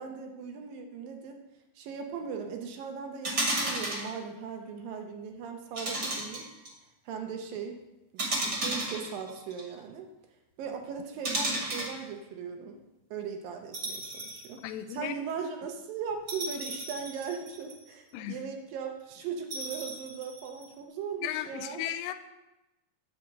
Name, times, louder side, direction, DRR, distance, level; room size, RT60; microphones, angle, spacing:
voice 1, 0.0-1.4 1.8-6.5 7.1-7.8 8.1-10.1 10.6-12.8 13.1-14.6 14.9-21.8, right 6 dB, 75° right, 4 dB, 2.3 m, -38 dB
sound 1, 3.2-4.1 5.8-6.7 8.2-9.6 11.2-12.0 13.7-14.5 14.9-15.0 16.3-17.9 19.5-20.6, right 1 dB, 35° right, 1.8 m, -33 dB
voice 2, 14.6-15.1 18.1-18.5 21.2-22.1, left 12 dB, 85° left, 10 dB, 2.7 m, -35 dB
9.8 x 4.6 x 7.6 m, 0.99 s
omnidirectional pair, 4.8 m